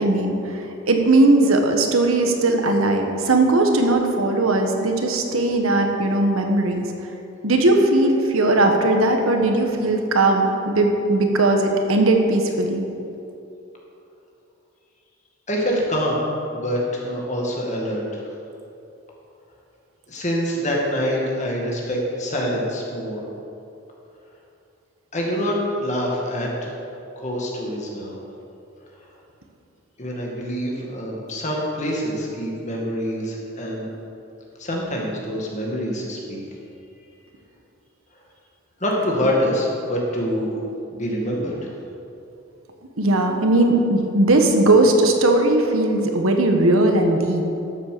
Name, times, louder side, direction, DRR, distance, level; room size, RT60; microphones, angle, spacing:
voice 1, 0.0-6.9 7.4-12.8 43.0-47.4, right 2 dB, 80° right, 4 dB, 1.4 m, -18 dB
voice 2, 15.5-16.2 16.5-18.0 20.1-23.2 25.1-26.7 27.2-28.2 30.0-33.9 34.6-36.4 38.8-40.6 40.9-41.7, equal, 35° left, -2 dB, 2.1 m, -25 dB
13.0 x 7.6 x 6.8 m, 2.8 s
head